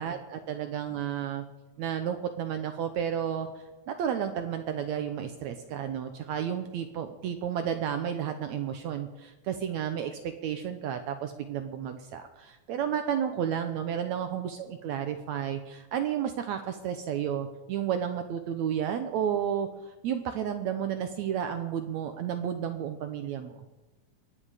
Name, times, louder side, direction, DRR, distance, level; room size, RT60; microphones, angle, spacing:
voice 1, 0.0-1.5 1.8-19.7 20.0-23.6, right 9 dB, 75° right, 7 dB, 1.9 m, -32 dB
22.5 x 9.6 x 5.0 m, 1.1 s
omnidirectional pair, 3.8 m